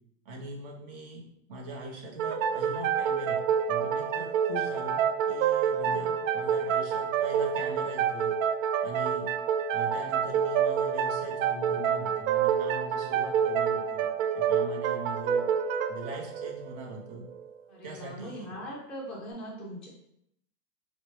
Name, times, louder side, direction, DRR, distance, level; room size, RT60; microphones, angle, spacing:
voice 1, 0.2-1.2 1.5-8.3 8.8-9.3 9.7-14.1 14.3-15.5 15.9-17.2 17.8-18.5, right 2 dB, 45° right, 1 dB, 0.8 m, -41 dB
sound 1, 2.2-17.5, right 8 dB, 75° right, 0.5 m, -28 dB
voice 2, 5.8-6.2 17.7-19.9, equal, ahead, -5 dB, 0.4 m, -41 dB
4.1 x 2.1 x 3.2 m, 0.78 s
supercardioid pair, 160°, 39 cm